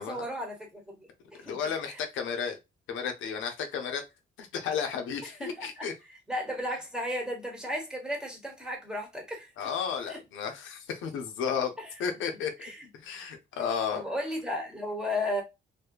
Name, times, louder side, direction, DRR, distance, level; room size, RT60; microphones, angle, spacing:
voice 1, 0.0-1.6 1.9-2.0 5.4-5.9 6.3-9.5 10.1-10.2 11.8-11.9 12.6-12.9 13.9-15.4, left 1 dB, 5° right, 1.1 m, -34 dB
voice 2, 1.4-2.6 2.9-4.0 4.4-5.9 9.6-11.7 12.0-12.5 12.9-14.0, left 7 dB, 80° left, 0.6 m, -33 dB
2.6 x 2.2 x 2.2 m
cardioid pair, 90°, 20 cm